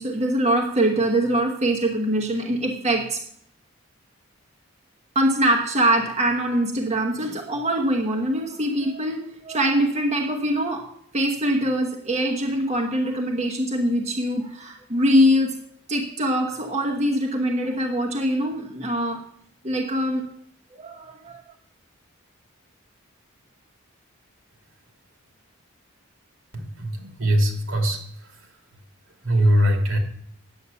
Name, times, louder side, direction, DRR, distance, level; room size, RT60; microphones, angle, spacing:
voice 1, 0.0-3.2 5.1-10.9 11.1-15.6 15.9-19.2 19.6-20.3 20.7-21.4, right 1 dB, 30° right, 2 dB, 1.1 m, -23 dB
voice 2, 26.5-28.0 29.2-30.0, equal, 75° right, 3 dB, 2.7 m, -21 dB
9.7 x 8.3 x 7.0 m, 0.66 s
head